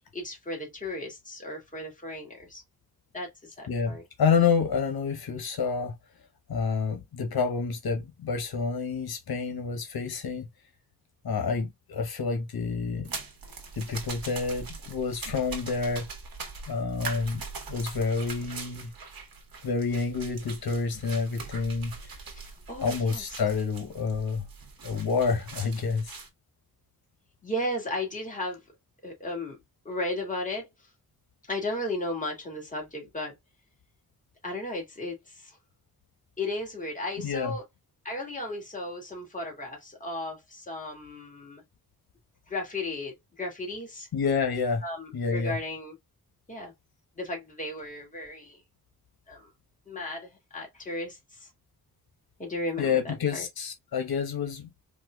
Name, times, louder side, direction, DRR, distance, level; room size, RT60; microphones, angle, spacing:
voice 1, 0.1-2.6 3.1-4.0 22.3-23.2 27.4-28.6 29.0-29.6 29.9-30.7 31.5-33.3 34.4-35.6 36.4-37.6 38.0-41.6 42.5-44.1 44.8-46.0 46.5-46.7 47.2-48.6 49.3-49.5 49.9-51.5 52.4-53.5, left 1 dB, 20° left, 2.0 m, -35 dB
voice 2, 3.7-6.0 6.5-10.5 11.2-13.1 13.8-16.1 16.7-18.9 19.6-22.2 22.8-24.5 24.8-26.1 37.2-37.6 44.1-44.8 45.1-45.6 52.8-54.7, left 5 dB, 85° left, 1.1 m, -28 dB
sound 1, 13.0-26.3, right 4 dB, 70° right, 1.2 m, -42 dB
4.4 x 2.6 x 2.2 m
wide cardioid pair, 145°, 37 cm